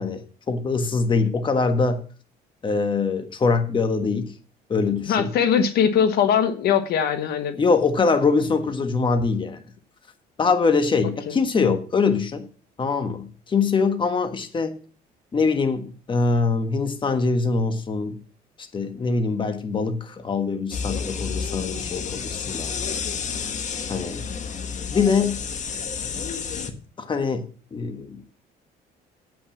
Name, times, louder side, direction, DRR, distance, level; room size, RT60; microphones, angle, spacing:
voice 1, 0.0-2.0 2.6-4.3 4.7-5.3 7.6-9.6 10.4-12.4 12.8-14.8 15.3-18.2 18.7-23.0 23.9-24.2 24.9-25.4 27.0-27.4 27.7-28.2, left 4 dB, 30° left, 1.4 m, -23 dB
voice 2, 5.1-7.6 11.3-11.4, left 8 dB, 70° left, 1.2 m, -21 dB
sound 1, 20.7-26.7, left 6 dB, 45° left, 1.2 m, -30 dB
8.0 x 6.0 x 7.1 m
cardioid pair, 110°, 17 cm